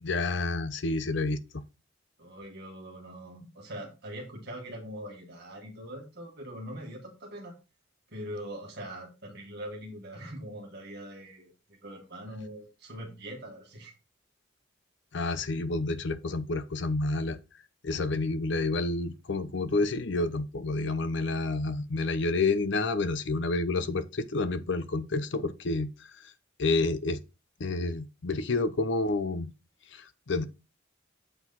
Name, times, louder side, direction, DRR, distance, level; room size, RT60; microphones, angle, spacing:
voice 1, 0.0-1.6 15.1-17.4 17.8-26.3 26.6-27.2 27.6-29.5 29.9-30.4, left 3 dB, 65° left, 0.7 m, -29 dB
voice 2, 2.2-7.5 8.1-13.9 18.2-18.3, equal, 60° right, 1.5 m, -42 dB
7.9 x 4.5 x 4.0 m
head